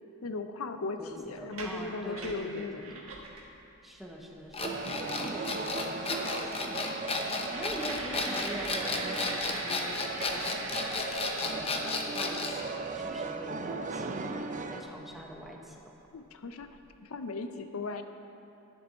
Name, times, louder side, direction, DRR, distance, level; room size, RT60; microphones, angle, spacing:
voice 1, 0.2-3.0 7.2-7.5 16.1-16.7 17.0-18.0, left 3 dB, 85° left, 8 dB, 0.6 m, -37 dB
voice 2, 1.0-2.8 3.8-4.8 5.2-6.8 7.5-10.6 11.4-14.1 14.7-15.9, equal, ahead, -1 dB, 1.1 m, -44 dB
sound 1, 1.4-3.5 4.0-4.1 4.3-4.8 5.3-5.4 5.8-5.9 6.2-6.3 6.6-12.3 13.7-13.8 14.1-15.4 16.0-16.1 16.4-16.9, right 2 dB, 75° right, 1.5 m, -42 dB
sound 2, 4.5-12.6, left 3 dB, 30° left, 0.8 m, -33 dB
sound 3, 4.6-14.8, right 3 dB, 35° right, 0.5 m, -38 dB
11.5 x 10.0 x 4.2 m, 2.8 s
head